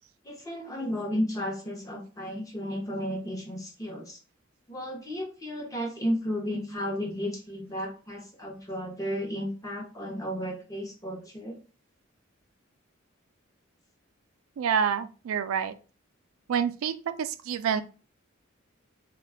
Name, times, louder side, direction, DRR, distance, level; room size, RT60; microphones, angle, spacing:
voice 1, 0.2-4.2 4.7-11.6, equal, 15° left, 0 dB, 0.7 m, -33 dB
voice 2, 14.6-15.7 16.5-17.8, right 7 dB, 80° right, 11 dB, 0.3 m, -27 dB
2.4 x 2.2 x 3.4 m, 0.35 s
head